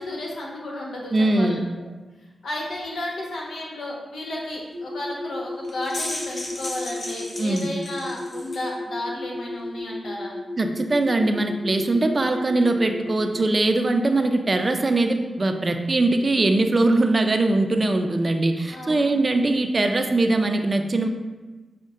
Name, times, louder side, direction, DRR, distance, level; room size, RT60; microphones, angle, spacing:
voice 1, 0.0-1.6 2.4-10.3 18.7-19.1, left 1 dB, 75° left, -2 dB, 1.0 m, -33 dB
voice 2, 1.1-1.6 7.4-7.7 10.6-21.1, right 2 dB, 40° right, 6 dB, 0.4 m, -21 dB
sound 1, 4.7-13.4, left 2 dB, 80° right, 0.8 m, -34 dB
sound 2, 5.6-8.7, left 1 dB, 50° left, 0.8 m, -35 dB
6.3 x 2.1 x 3.7 m, 1.2 s
cardioid pair, 55°, 0 cm